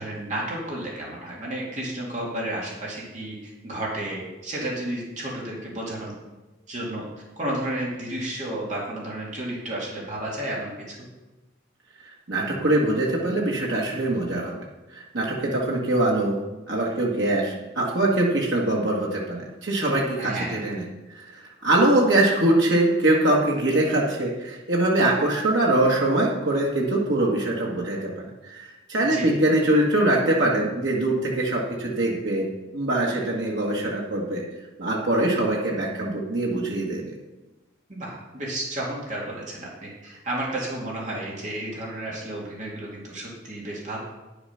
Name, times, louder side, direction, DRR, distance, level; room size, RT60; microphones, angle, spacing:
voice 1, 0.0-6.1 6.7-7.0 7.4-11.0 20.2-20.6 29.0-29.3 37.9-44.0, right 1 dB, 40° right, -4 dB, 2.3 m, -32 dB
voice 2, 12.3-14.6 14.9-16.4 16.7-20.8 21.1-28.1 28.4-32.5 32.7-34.4 34.8-37.1, right 1 dB, 75° right, -3 dB, 1.6 m, -23 dB
9.9 x 6.9 x 5.7 m, 1.1 s
head